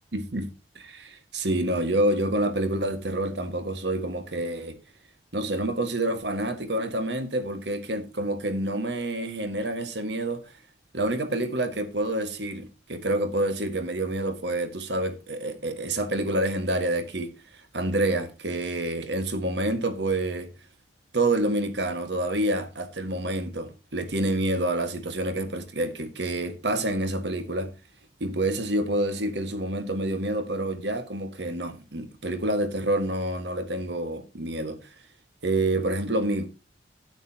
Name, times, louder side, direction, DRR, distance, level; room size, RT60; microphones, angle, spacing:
voice 1, 0.1-4.8 5.3-10.5 10.9-20.5 21.1-27.7 28.2-34.9 35.4-36.5, right 1 dB, 75° right, 1.6 m, -28 dB
12.5 x 9.4 x 2.8 m
head